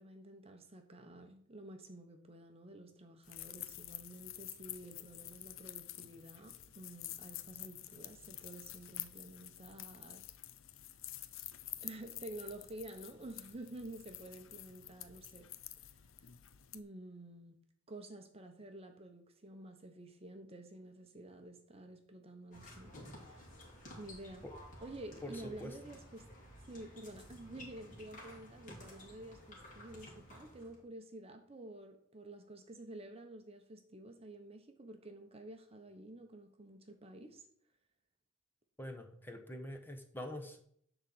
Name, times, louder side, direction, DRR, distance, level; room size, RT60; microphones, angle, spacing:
voice 1, 0.0-10.3 11.8-15.5 16.7-23.5 24.0-24.5 24.8-26.3 26.6-37.5, right 1 dB, 30° right, 0.9 m, -51 dB
sound 1, 3.2-16.8, left 14 dB, 65° left, 0.6 m, -49 dB
sound 2, 22.5-30.8, left 1 dB, 40° left, 3.0 m, -54 dB
voice 2, 25.2-25.7 38.8-40.6, left 1 dB, 10° left, 1.1 m, -45 dB
11.0 x 4.0 x 7.7 m
head